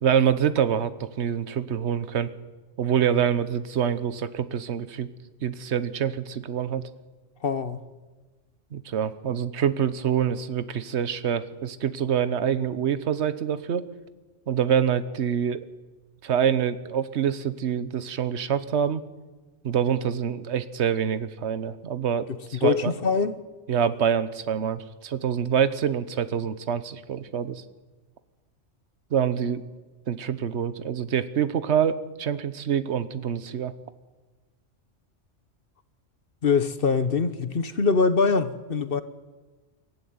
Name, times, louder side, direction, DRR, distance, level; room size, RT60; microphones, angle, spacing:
voice 1, 0.0-2.3 2.8-5.1 5.4-6.8 8.7-13.9 14.5-15.6 16.2-19.0 19.6-22.9 23.7-27.6 29.1-29.6 30.1-33.7, right 8 dB, 65° right, 14 dB, 1.2 m, -26 dB
voice 2, 7.4-7.8 22.5-23.4 36.4-39.0, left 5 dB, 50° left, 12 dB, 1.2 m, -23 dB
23.0 x 14.0 x 9.5 m, 1.3 s
omnidirectional pair, 1.3 m